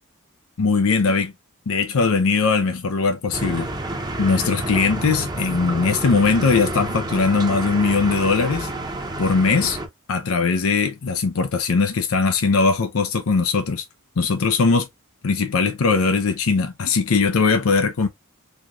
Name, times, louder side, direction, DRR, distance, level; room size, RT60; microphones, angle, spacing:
voice 1, 0.6-1.3 1.7-3.7 4.2-8.7 9.2-9.8 10.1-13.9 14.2-14.9 15.2-18.1, left 4 dB, 80° left, 0.6 m, -20 dB
sound 1, 3.3-9.9, right 2 dB, 20° right, 0.9 m, -29 dB
4.2 x 2.9 x 2.4 m
head